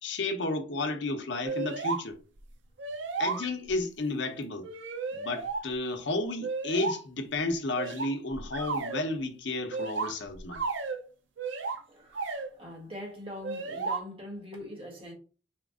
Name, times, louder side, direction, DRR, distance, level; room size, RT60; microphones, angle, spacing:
voice 1, 0.0-2.2 3.2-4.7 5.1-10.6, left 2 dB, 65° left, 0.8 m, -32 dB
sound 1, 1.4-2.0 2.4-2.5 2.8-3.8 4.6-5.6 6.4-7.0 7.8-9.0 9.7-11.0 11.4-11.8 12.1-12.5 13.4-14.0, right 4 dB, 65° right, 0.6 m, -33 dB
voice 2, 11.9-15.1, left 1 dB, 30° right, 1.4 m, -43 dB
4.4 x 2.5 x 3.6 m
head